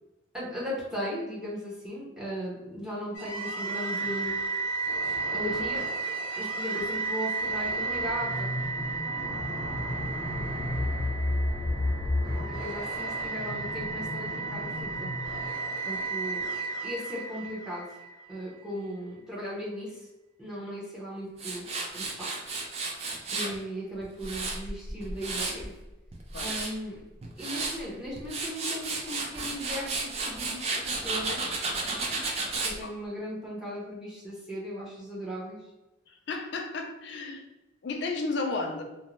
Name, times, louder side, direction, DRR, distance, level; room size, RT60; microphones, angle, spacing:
voice 1, 0.3-4.3 5.0-5.8 6.4-8.5 12.4-15.1 15.8-16.5 16.8-17.8 18.3-20.1 20.4-22.4 23.3-25.7 26.4-27.0 27.4-31.5 32.6-35.6, equal, 5° right, -6 dB, 0.7 m, -37 dB
sound 1, 3.1-18.3, right 2 dB, 75° left, 0.8 m, -31 dB
Tools, 21.4-23.5 24.0-25.7 26.1-26.7 27.2-27.8 28.2-32.8, right 3 dB, 30° right, 0.3 m, -32 dB
voice 2, 36.1-37.4 37.8-38.8, left 3 dB, 60° left, 3 dB, 0.4 m, -33 dB
2.5 x 2.0 x 3.0 m, 1.0 s
head